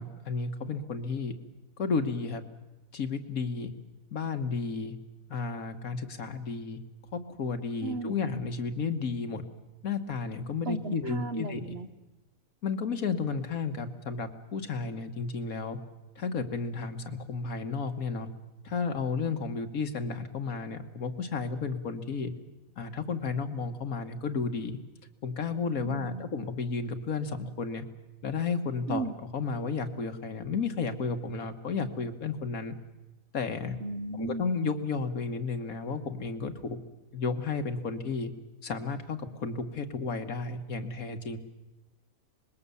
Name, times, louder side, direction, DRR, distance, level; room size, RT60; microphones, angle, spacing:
voice 1, 0.0-1.3 1.8-2.4 2.9-3.7 4.1-4.9 5.3-6.8 7.1-9.4 9.8-11.7 12.6-15.8 16.2-18.3 18.6-22.3 22.8-24.8 25.2-27.9 28.2-29.1 29.3-32.8 33.3-33.8 34.2-36.8 37.1-38.3 38.6-41.4, left 4 dB, 75° left, 7 dB, 1.8 m, -32 dB
voice 2, 7.8-8.2 10.7-11.9 25.8-26.3 28.9-29.1 33.8-34.5, right 3 dB, 50° right, 10 dB, 1.1 m, -35 dB
25.0 x 21.0 x 7.0 m, 1.1 s
omnidirectional pair, 1.5 m